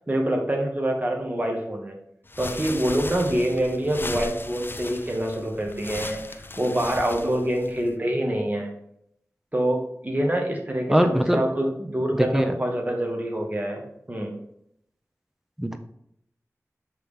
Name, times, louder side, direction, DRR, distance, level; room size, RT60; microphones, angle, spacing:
voice 1, 0.1-2.0 2.4-8.7 9.5-14.3, right 1 dB, 30° right, 1 dB, 1.5 m, -26 dB
sound 1, 2.3-8.0, left 2 dB, 40° left, 0.5 m, -37 dB
voice 2, 10.9-11.4 12.1-12.6 15.6-15.8, equal, 5° right, 6 dB, 0.7 m, -21 dB
7.5 x 3.4 x 5.4 m, 0.72 s
wide cardioid pair, 60°, 6 cm